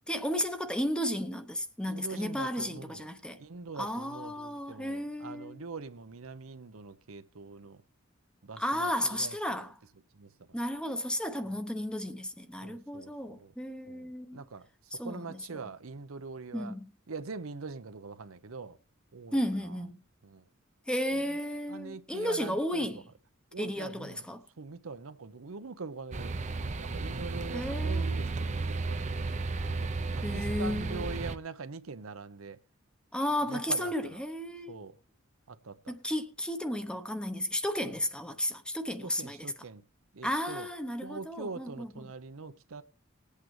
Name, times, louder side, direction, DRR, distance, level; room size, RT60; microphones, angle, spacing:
voice 1, 0.1-3.4 3.8-5.6 8.6-9.7 10.5-14.4 15.0-15.4 16.5-16.9 19.3-20.0 20.9-23.1 23.6-24.4 27.5-28.1 30.2-31.1 33.1-34.8 35.9-39.5 40.2-41.9, equal, 5° left, 0.8 m, -33 dB
voice 2, 1.9-3.1 3.4-7.8 8.4-9.4 9.6-9.7 10.1-10.6 12.6-13.5 13.9-14.7 14.9-16.7 17.1-18.8 19.1-19.4 19.6-19.8 20.2-20.4 21.1-21.2 21.7-23.0 23.5-24.2 24.6-26.3 26.7-32.6 33.4-34.2 34.7-35.0 35.5-35.9 37.9-38.0 39.0-39.8 40.1-40.7 41.0-42.8, right 4 dB, 75° right, 0.8 m, -43 dB
sound 1, 26.1-31.4, right 3 dB, 35° right, 0.6 m, -33 dB
20.5 x 8.4 x 3.2 m
head